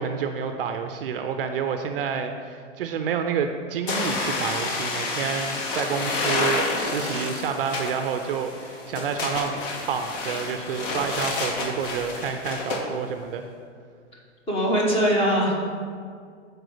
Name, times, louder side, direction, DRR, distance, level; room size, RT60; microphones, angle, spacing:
voice 1, 0.0-13.5, right 6 dB, 50° right, 7 dB, 0.5 m, -29 dB
sound 1, 3.9-12.8, left 3 dB, 45° left, 1.2 m, -29 dB
voice 2, 14.5-15.5, equal, 15° left, -2 dB, 1.2 m, -21 dB
7.5 x 4.6 x 4.9 m, 2.1 s
hypercardioid pair, 140°, 37 cm